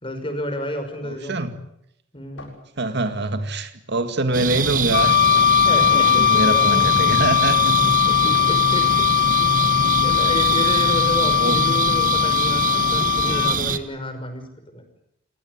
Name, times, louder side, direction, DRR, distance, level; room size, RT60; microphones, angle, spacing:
voice 1, 0.0-1.3 2.1-2.5 5.6-7.2 8.1-9.1 9.4-9.6 10.0-14.9, equal, 30° left, 6 dB, 5.8 m, -30 dB
voice 2, 1.0-1.6 2.8-5.3 6.1-8.3 11.4-11.7, right 2 dB, 60° right, 9 dB, 2.0 m, -24 dB
sound 1, 2.4-3.3 5.3-5.8 8.3-8.7 11.3-11.8, left 2 dB, 75° left, 7.5 m, -44 dB
sound 2, 4.3-13.8, right 5 dB, 45° right, 1.4 m, -24 dB
Wind instrument woodwind instrument, 4.9-13.6, left 11 dB, 55° left, 1.3 m, -19 dB
28.5 x 17.5 x 9.6 m, 0.77 s
head